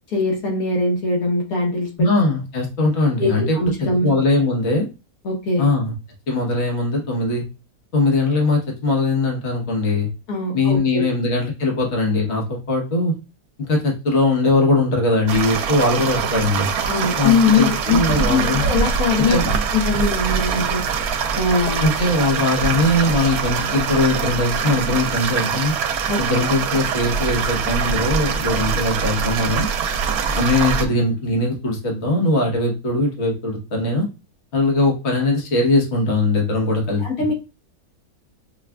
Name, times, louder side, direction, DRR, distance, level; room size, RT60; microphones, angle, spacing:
voice 1, 0.1-2.1 3.2-4.1 5.2-5.7 10.3-11.1 16.9-19.4 19.7-20.8 21.3-21.9 26.1-26.4 37.0-37.3, left 4 dB, 75° left, -1 dB, 1.4 m, -21 dB
voice 2, 2.0-3.6 4.0-4.9 5.6-5.9 6.3-7.4 7.9-10.1 10.5-13.1 13.7-16.7 17.2-18.6 19.2-19.5 21.8-25.7 26.2-29.7 30.3-34.0 34.5-37.0, left 2 dB, 50° left, -1 dB, 1.3 m, -20 dB
sound 1, 15.3-30.9, right 6 dB, 80° right, 1.1 m, -23 dB
5.8 x 2.4 x 2.2 m, 0.29 s
omnidirectional pair, 1.6 m